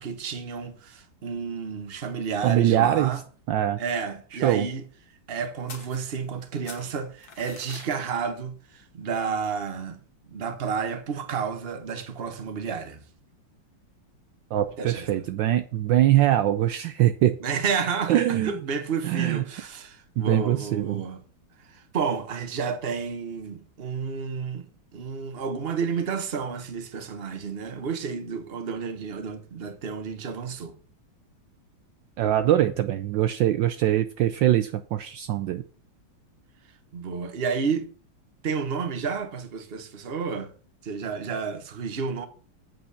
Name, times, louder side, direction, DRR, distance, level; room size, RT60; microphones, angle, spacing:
voice 1, 0.0-3.2 3.8-4.8 5.3-10.0 10.3-13.0 14.8-15.3 17.4-21.2 21.6-24.7 24.9-30.7 36.9-37.9 38.4-40.5 40.8-42.3, right 5 dB, 35° right, 1.2 m, -31 dB
voice 2, 2.4-3.2 3.5-3.8 4.4-4.7 14.5-17.4 18.1-18.5 19.0-19.4 20.2-21.0 32.2-35.6, right 12 dB, 70° right, 1.2 m, -22 dB
sound 1, 5.7-6.4 6.6-7.9, left 5 dB, 50° left, 1.8 m, -44 dB
7.9 x 5.6 x 6.8 m
omnidirectional pair, 2.3 m